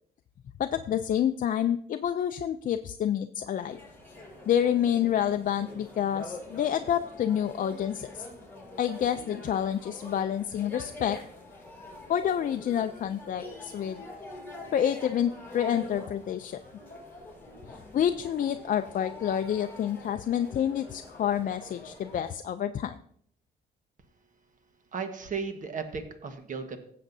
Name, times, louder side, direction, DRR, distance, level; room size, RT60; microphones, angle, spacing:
voice 1, 0.6-3.8 4.5-8.2 8.8-11.2 12.1-14.0 14.7-16.6 17.9-23.0, left 9 dB, 50° left, 8 dB, 0.4 m, -28 dB
sound 1, 3.5-22.3, left 2 dB, 10° left, 4.8 m, -45 dB
voice 2, 24.9-26.8, right 5 dB, 45° right, 7 dB, 1.4 m, -35 dB
16.0 x 7.5 x 2.7 m, 0.66 s
cardioid pair, 110°, 18 cm